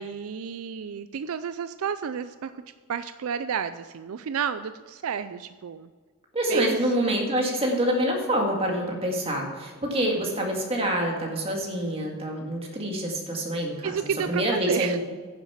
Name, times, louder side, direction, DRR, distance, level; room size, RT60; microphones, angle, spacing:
voice 1, 0.0-2.6 2.9-5.9 6.5-6.8 13.8-15.0, right 7 dB, 70° right, 12 dB, 0.4 m, -31 dB
voice 2, 6.3-13.9 14.3-15.0, right 1 dB, 25° right, 0 dB, 2.0 m, -26 dB
10.5 x 7.2 x 5.7 m, 1.5 s
head